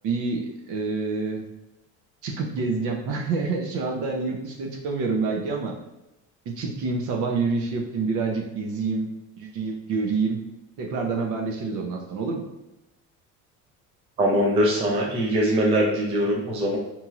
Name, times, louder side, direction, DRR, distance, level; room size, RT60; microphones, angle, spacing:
voice 1, 0.0-1.5 2.2-5.7 6.5-9.1 9.4-10.4 10.8-12.4, right 4 dB, 55° right, 2 dB, 0.6 m, -27 dB
voice 2, 14.2-16.8, equal, 15° right, -2 dB, 0.3 m, -22 dB
3.0 x 2.7 x 2.4 m, 0.95 s
cardioid pair, 150°, 37 cm